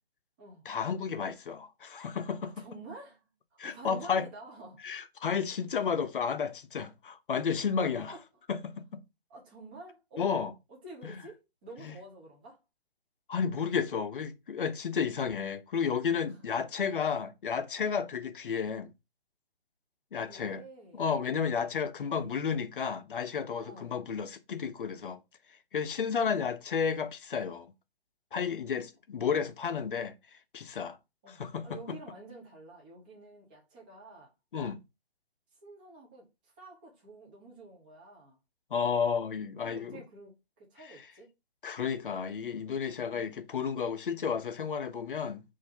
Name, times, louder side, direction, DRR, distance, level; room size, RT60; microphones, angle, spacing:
voice 1, 0.7-2.5 3.6-4.3 4.8-8.1 8.5-9.0 10.2-10.5 11.1-11.2 11.8-11.9 13.3-18.9 20.1-20.6 20.9-25.2 25.7-27.7 28.3-30.1 30.5-31.0 31.3-32.0 34.5-34.8 38.7-40.0 41.6-45.4, left 6 dB, 55° left, 0.6 m, -32 dB
voice 2, 2.4-3.2 3.5-4.8 7.8-8.2 9.3-10.4 10.8-12.6 16.3-16.4 17.8-18.1 20.1-21.1 22.0-22.4 23.6-24.0 31.2-34.3 35.5-38.4 39.6-41.3 43.1-43.3, right 2 dB, 10° right, 0.5 m, -49 dB
4.2 x 2.5 x 4.1 m
figure-of-eight pair, 140°, 32 cm